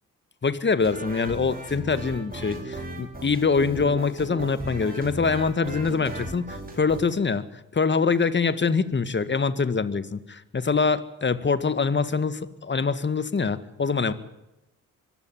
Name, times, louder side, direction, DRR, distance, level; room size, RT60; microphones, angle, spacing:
voice 1, 0.4-7.4 7.7-14.1, left 5 dB, 35° left, 13 dB, 2.0 m, -24 dB
sound 1, 0.8-7.0, right 1 dB, 25° right, 6.1 m, -37 dB
24.0 x 15.5 x 9.2 m, 0.93 s
cardioid pair, 75°, 34 cm